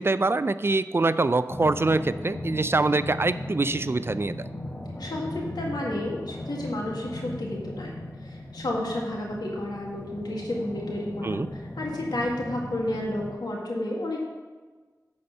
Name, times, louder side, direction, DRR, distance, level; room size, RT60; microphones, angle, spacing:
voice 1, 0.0-4.5 11.2-11.5, right 3 dB, 35° right, 14 dB, 0.3 m, -24 dB
sound 1, 1.5-13.3, left 1 dB, 25° left, 1.1 m, -37 dB
voice 2, 5.0-7.9 8.2-14.2, left 1 dB, 85° left, -2 dB, 1.8 m, -31 dB
9.7 x 4.2 x 6.6 m, 1.4 s
wide cardioid pair, 45°, 7 cm